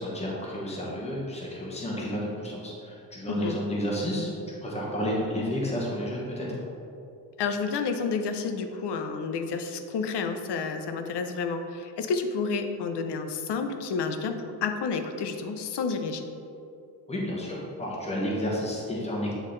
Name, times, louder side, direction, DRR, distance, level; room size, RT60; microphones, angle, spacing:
voice 1, 0.0-4.3 4.6-6.5 17.1-19.3, equal, 15° left, -4 dB, 1.0 m, -31 dB
voice 2, 3.3-3.6 7.4-16.3, left 5 dB, 85° left, 7 dB, 0.6 m, -30 dB
8.4 x 3.7 x 3.8 m, 2.6 s
wide cardioid pair, 175°, 40 cm